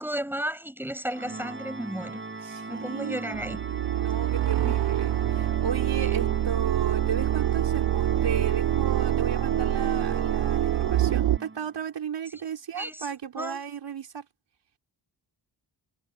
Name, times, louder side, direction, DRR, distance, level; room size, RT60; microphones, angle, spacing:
voice 1, 0.0-2.2 2.7-3.6 4.6-4.7 6.0-6.1 12.3-13.1 13.4-13.6, right 1 dB, 5° right, 7.2 m, -34 dB
Organ, 1.1-11.8, right 3 dB, 25° right, 7.5 m, -38 dB
voice 2, 2.4-14.3, right 7 dB, 75° right, 5.4 m, -35 dB
sound 1, 3.3-11.4, right 12 dB, 60° right, 0.5 m, -25 dB
wide cardioid pair, 130°, 43 cm